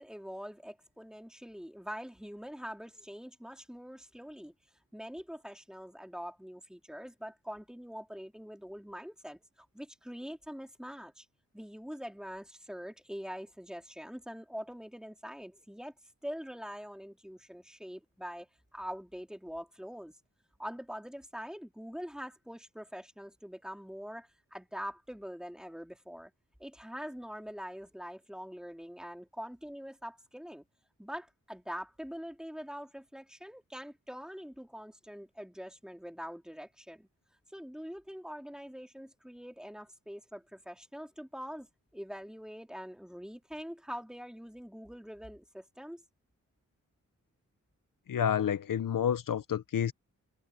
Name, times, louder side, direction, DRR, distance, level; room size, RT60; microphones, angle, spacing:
voice 1, 0.0-4.5 4.9-11.3 11.5-15.9 16.2-20.2 20.6-26.3 26.6-30.6 31.0-37.1 37.5-41.7 41.9-46.0, equal, ahead, 4.2 m, -44 dB
voice 2, 48.1-49.9, left 9 dB, 85° left, 0.9 m, -29 dB
wide cardioid pair, 95°, 32 cm